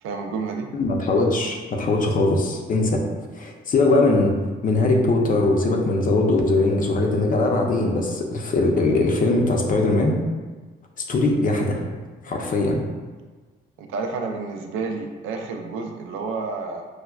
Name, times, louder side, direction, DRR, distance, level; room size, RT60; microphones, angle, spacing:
voice 1, 0.0-0.7 13.8-16.9, right 4 dB, 85° right, 3 dB, 0.5 m, -30 dB
voice 2, 0.7-3.0 3.3-4.3 4.6-10.2 11.1-11.8 12.2-12.8, left 2 dB, 45° left, 2 dB, 0.5 m, -21 dB
4.7 x 2.1 x 2.3 m, 1.3 s
cardioid pair, 90°, 20 cm